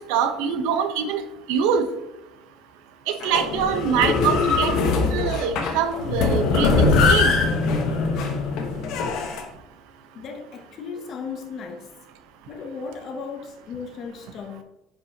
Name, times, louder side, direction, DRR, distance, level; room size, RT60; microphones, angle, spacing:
voice 1, 0.1-1.2 1.5-1.8 3.1-4.7 5.1-7.3, right 7 dB, 80° right, 0.9 m, -24 dB
sound 1, 3.2-9.4, left 4 dB, 65° left, 1.1 m, -22 dB
voice 2, 10.1-11.9 12.5-14.6, left 5 dB, 45° left, 0.8 m, -36 dB
9.4 x 5.3 x 2.9 m
cardioid pair, 125°, 0 cm